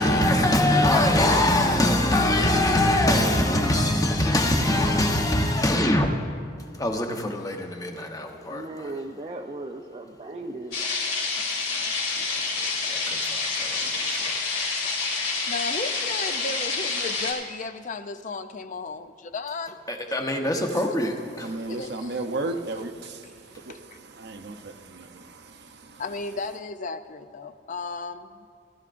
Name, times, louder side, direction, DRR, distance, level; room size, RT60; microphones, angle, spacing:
voice 1, 0.0-6.1 6.8-8.9 12.3-13.8 14.2-14.3 19.9-21.5, left 1 dB, 20° left, 0.9 m, -23 dB
voice 2, 8.4-10.8, right 2 dB, 30° right, 0.5 m, -37 dB
sound 1, 10.7-17.3, left 4 dB, 90° left, 2.7 m, -28 dB
voice 3, 15.5-19.8 21.7-22.2 23.7-24.0 26.0-28.5, left 3 dB, 45° left, 0.5 m, -34 dB
voice 4, 21.3-26.0, right 2 dB, 60° right, 0.7 m, -35 dB
18.5 x 13.0 x 2.5 m
head